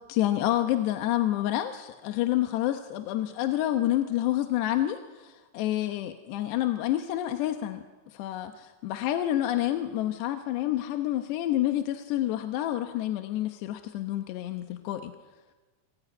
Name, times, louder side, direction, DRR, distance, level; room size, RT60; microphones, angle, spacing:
voice 1, 0.1-7.8 8.1-15.2, left 13 dB, 75° left, 6 dB, 2.9 m, -28 dB
29.5 x 21.0 x 9.5 m, 1.3 s
omnidirectional pair, 5.5 m